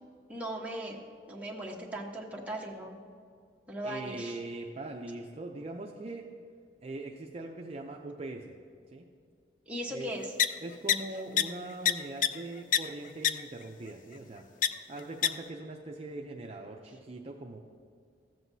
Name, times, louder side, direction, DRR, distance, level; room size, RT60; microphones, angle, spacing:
voice 1, 0.3-1.0 1.3-3.0 3.7-4.4 9.7-10.3, right 1 dB, 10° right, -3 dB, 1.1 m, -38 dB
voice 2, 3.8-6.3 6.8-8.6 8.9-9.1 9.9-10.1 10.6-17.6, right 2 dB, 35° right, 1 dB, 0.5 m, -41 dB
sound 1, 10.4-10.5 10.9-11.0 11.4-11.5 11.9-12.0 12.2-12.3 12.7-12.8 13.2-13.3 14.6-14.7 15.2-15.3, left 10 dB, 50° left, 0.3 m, -22 dB
15.0 x 7.8 x 2.7 m, 2.2 s
head